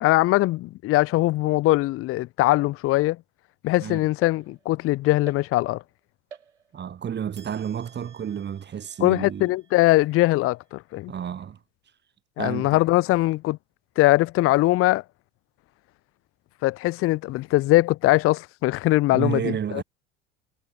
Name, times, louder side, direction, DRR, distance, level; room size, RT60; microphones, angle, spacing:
voice 1, 0.0-3.2 3.6-5.8 9.0-11.1 12.4-13.6 14.0-15.0 16.6-19.8, left 18 dB, 40° left, 0.7 m, -21 dB
sound 1, 4.2-4.9 5.3-5.9 6.3-7.0 7.4-10.8, right 7 dB, 85° right, 4.6 m, -51 dB
voice 2, 6.7-9.5 11.1-11.6 12.4-12.8 19.1-19.8, right 8 dB, 30° right, 2.0 m, -31 dB
hypercardioid pair, 75°, 34 cm